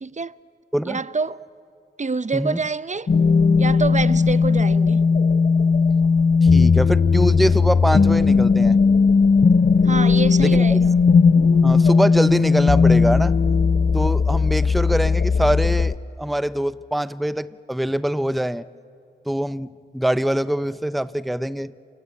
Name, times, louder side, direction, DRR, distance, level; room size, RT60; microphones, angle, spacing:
voice 1, 0.0-0.3 0.8-1.5 2.0-3.1 3.6-5.0 9.8-10.9, right 4 dB, 35° right, 0.7 m, -26 dB
sound 1, 3.1-15.9, left 5 dB, 45° left, 0.8 m, -17 dB
voice 2, 6.4-8.8 10.4-10.8 11.6-13.4 13.9-18.6 19.3-21.7, equal, ahead, 0.6 m, -23 dB
28.5 x 24.0 x 8.5 m
cardioid pair, 45°, 20 cm